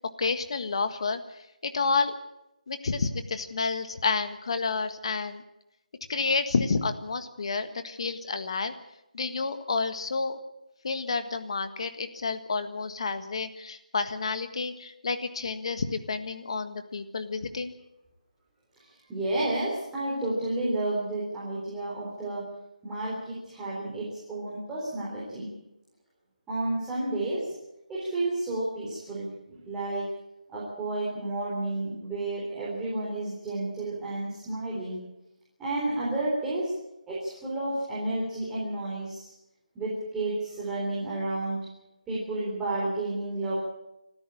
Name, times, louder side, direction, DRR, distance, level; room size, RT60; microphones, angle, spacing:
voice 1, 0.2-2.1 2.7-5.4 6.1-8.7 9.1-10.4 10.8-17.7, left 4 dB, 40° left, 9 dB, 1.7 m, -30 dB
voice 2, 19.1-22.4 22.8-25.5 26.5-27.5 27.9-30.1 30.5-35.0 35.6-36.7 37.1-39.3 39.8-41.7 42.1-43.5, right 2 dB, 5° right, -8 dB, 3.9 m, -31 dB
25.0 x 13.0 x 8.6 m, 0.90 s
figure-of-eight pair, 170°, 4 cm